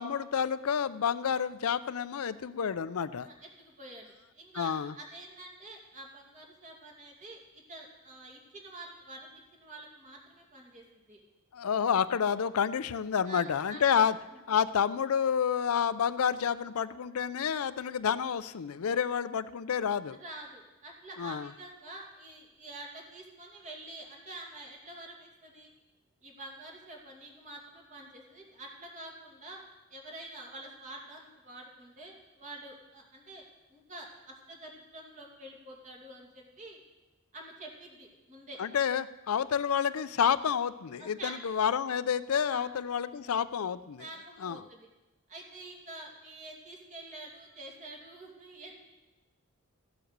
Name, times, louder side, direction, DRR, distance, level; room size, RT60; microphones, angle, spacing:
voice 1, 0.0-3.3 4.5-4.9 11.5-14.2 14.5-20.2 21.2-21.5 38.6-44.0 44.4-44.6, left 7 dB, 85° left, 15 dB, 0.5 m, -29 dB
voice 2, 3.2-11.2 13.3-13.4 13.7-14.1 20.2-25.7 26.2-29.6 29.9-33.4 33.7-36.8 37.3-38.6 41.0-41.3 42.5-42.7 44.0-44.9 45.3-48.8, right 2 dB, 35° right, 0 dB, 2.5 m, -47 dB
14.5 x 7.7 x 6.6 m, 1.1 s
head